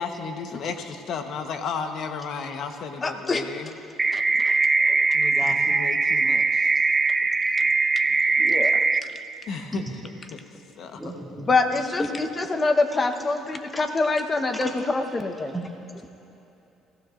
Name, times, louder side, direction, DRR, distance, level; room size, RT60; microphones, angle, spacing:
voice 1, 0.0-3.7 5.1-6.7 9.4-9.8 10.8-11.2, left 5 dB, 60° left, 6 dB, 1.1 m, -33 dB
voice 2, 3.0-3.5 4.1-4.5 8.4-8.8 11.5-15.5, left 3 dB, 30° left, 7 dB, 1.1 m, -25 dB
sound 1, 4.0-9.0, right 3 dB, 25° right, 0.4 m, -21 dB
voice 3, 6.5-6.9 7.6-7.7 8.1-8.7 9.7-10.1 10.9-12.3 13.7-13.8 14.5-15.0 15.4-16.1, equal, 5° left, -2 dB, 2.2 m, -37 dB
24.0 x 16.0 x 2.6 m, 2.9 s
cardioid pair, 90°, 0 cm